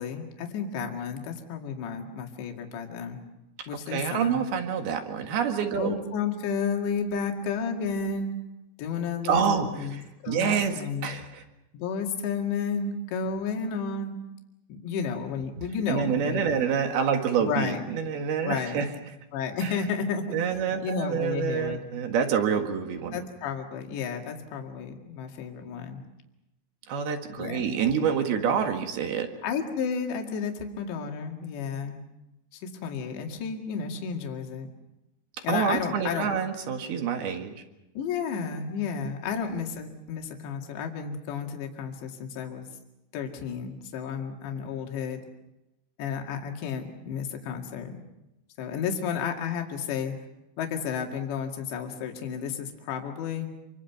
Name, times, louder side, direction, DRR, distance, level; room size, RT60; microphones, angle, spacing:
voice 1, 0.0-3.2 3.7-4.4 5.8-8.3 8.8-11.2 11.7-14.2 14.7-16.6 17.4-17.8 18.4-18.8 19.3-21.8 23.1-26.0 27.4-27.7 29.4-32.0 32.5-34.7 35.4-36.3 38.0-42.7 43.1-45.2 46.0-48.0 48.6-50.2 50.6-53.5, left 6 dB, 65° left, 2 dB, 4.2 m, -32 dB
voice 2, 3.7-6.0 9.2-10.0 10.3-11.4 15.9-18.9 19.6-19.7 20.3-23.2 26.9-29.3 35.5-37.5, right 7 dB, 60° right, 5 dB, 3.2 m, -27 dB
27.0 x 24.5 x 6.0 m, 0.92 s
omnidirectional pair, 5.8 m